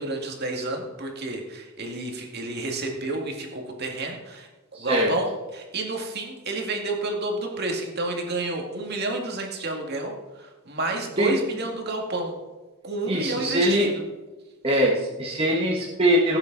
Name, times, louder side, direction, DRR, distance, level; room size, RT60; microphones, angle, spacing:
voice 1, 0.0-12.3 12.8-14.0, right 2 dB, 50° right, 2 dB, 2.1 m, -30 dB
voice 2, 4.7-5.1 11.2-11.4 13.1-13.9 14.6-16.4, equal, 25° right, -3 dB, 1.4 m, -22 dB
16.5 x 8.9 x 4.0 m, 1.2 s
head